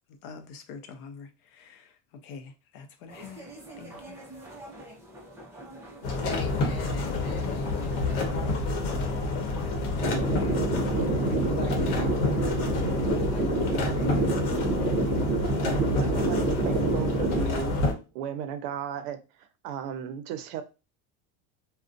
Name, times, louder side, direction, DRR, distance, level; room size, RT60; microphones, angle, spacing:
voice 1, 0.2-3.5 3.8-4.2, left 5 dB, 50° left, 0.4 m, -45 dB
sound 1, 3.1-8.3, right 1 dB, 5° right, 0.4 m, -46 dB
sound 2, 6.0-17.9, left 3 dB, 85° left, 0.8 m, -29 dB
voice 2, 6.2-9.0 9.9-14.5, left 3 dB, 35° left, 0.8 m, -41 dB
sound 3, 10.0-17.4, right 3 dB, 45° right, 0.7 m, -28 dB
voice 3, 16.0-17.9 18.1-20.6, right 9 dB, 85° right, 0.6 m, -35 dB
2.4 x 2.1 x 2.5 m
cardioid pair, 155°, 42 cm